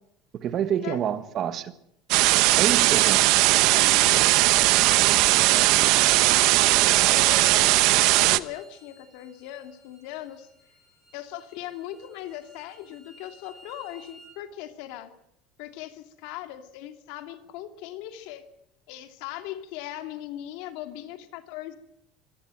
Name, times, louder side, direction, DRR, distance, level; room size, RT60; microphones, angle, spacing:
voice 1, 0.3-1.7 2.6-3.3, right 9 dB, 35° right, 12 dB, 1.5 m, -28 dB
sound 1, 2.1-8.4, right 19 dB, 60° right, 0.9 m, -19 dB
voice 2, 3.5-10.5 11.1-15.1 15.6-18.4 18.9-21.8, left 13 dB, 70° left, 8 dB, 2.6 m, -39 dB
Bowed string instrument, 6.9-14.3, right 1 dB, 5° left, 7.4 m, -54 dB
24.5 x 17.0 x 7.7 m, 0.77 s
cardioid pair, 175°, 0 cm